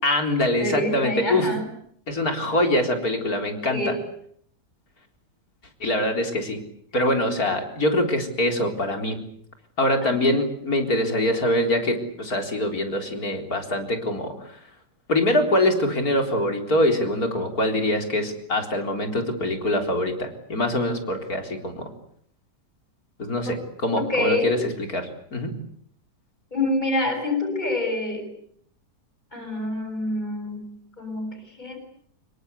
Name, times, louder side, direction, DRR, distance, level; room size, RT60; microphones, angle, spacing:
voice 1, 0.0-1.5 2.1-4.0 5.8-6.6 6.9-9.2 9.8-14.6 15.1-21.8 23.2-25.5, left 1 dB, 60° left, 5 dB, 4.4 m, -24 dB
voice 2, 0.6-1.7 3.7-4.0 10.0-10.1 23.5-23.6 24.1-24.6 26.5-28.3 29.3-30.6 31.0-31.3 31.6-31.8, left 2 dB, 25° left, 6 dB, 7.3 m, -26 dB
26.0 x 23.0 x 8.3 m, 0.65 s
omnidirectional pair, 1.8 m